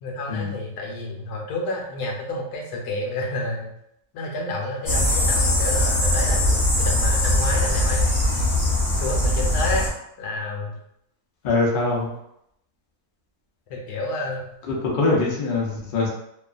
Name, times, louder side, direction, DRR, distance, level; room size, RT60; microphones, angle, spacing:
voice 1, 0.0-3.7 4.1-8.1 9.0-9.9 10.2-10.8 13.7-14.5, left 2 dB, 70° left, -1 dB, 1.1 m, -30 dB
sound 1, 4.9-9.9, left 1 dB, 35° left, 0.9 m, -21 dB
voice 2, 11.4-12.1 14.7-16.1, left 3 dB, 85° left, -2 dB, 0.4 m, -23 dB
2.8 x 2.3 x 2.4 m, 0.78 s
omnidirectional pair, 1.9 m